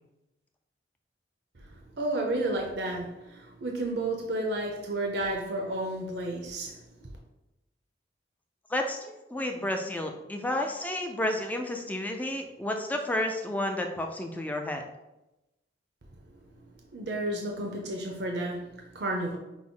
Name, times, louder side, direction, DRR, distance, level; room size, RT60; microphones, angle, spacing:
voice 1, 1.9-6.8 16.9-19.4, right 1 dB, 60° right, 1 dB, 0.6 m, -32 dB
voice 2, 8.7-14.8, left 1 dB, 10° left, 3 dB, 0.4 m, -31 dB
6.0 x 2.1 x 3.7 m, 0.95 s
head